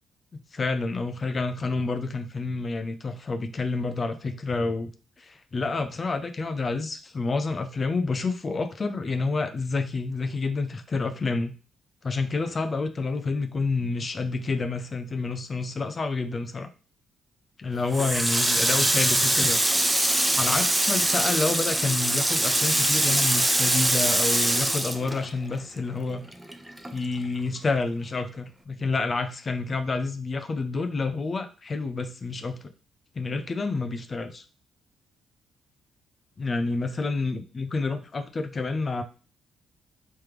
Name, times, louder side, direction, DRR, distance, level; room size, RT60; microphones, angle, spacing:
voice 1, 0.3-4.9 5.2-11.5 12.0-16.7 17.6-19.6 20.3-26.2 26.9-32.7 33.2-34.4 36.4-39.0, left 3 dB, 40° left, 7 dB, 0.4 m, -29 dB
Water tap faucet, 17.9-25.8 26.1-27.4, right 1 dB, 10° right, 0.5 m, -23 dB
3.3 x 3.1 x 3.2 m, 0.37 s
supercardioid pair, 70°, 0 cm